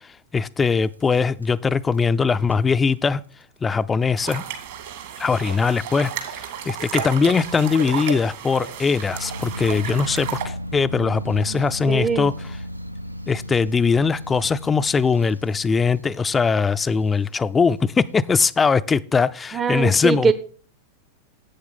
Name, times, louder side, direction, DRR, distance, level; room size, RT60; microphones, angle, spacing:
voice 1, 0.0-3.2 3.6-4.4 5.2-12.3 13.3-20.3, left 5 dB, 15° left, 0.4 m, -21 dB
sound 1, 0.8-2.0 2.3-2.5 2.9-3.1 3.4-3.5 3.7-3.8 4.4-4.5 5.3-5.4 5.8-5.9 7.2-7.3 7.9-8.0 9.1-17.4, equal, 85° right, 0.4 m, -35 dB
sound 2, 4.2-10.5, right 8 dB, 55° right, 2.0 m, -32 dB
voice 2, 11.9-12.3 19.5-20.3, right 5 dB, 20° right, 0.6 m, -21 dB
11.5 x 8.4 x 3.9 m
figure-of-eight pair, 90°, 0 cm